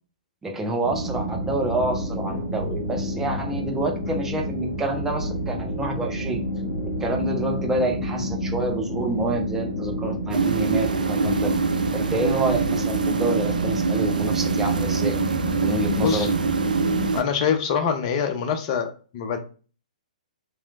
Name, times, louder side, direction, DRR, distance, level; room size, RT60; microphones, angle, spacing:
voice 1, 0.4-6.4 6.8-11.5 11.9-15.2 15.6-16.3, right 2 dB, 10° right, 1 dB, 0.6 m, -28 dB
sound 1, 0.8-17.1, equal, 55° left, 1.2 m, -29 dB
sound 2, 10.3-17.2, right 5 dB, 75° right, 0.4 m, -25 dB
voice 2, 17.1-19.4, left 7 dB, 35° left, 5 dB, 0.5 m, -24 dB
3.0 x 3.0 x 2.3 m, 0.37 s
figure-of-eight pair, 120°, 4 cm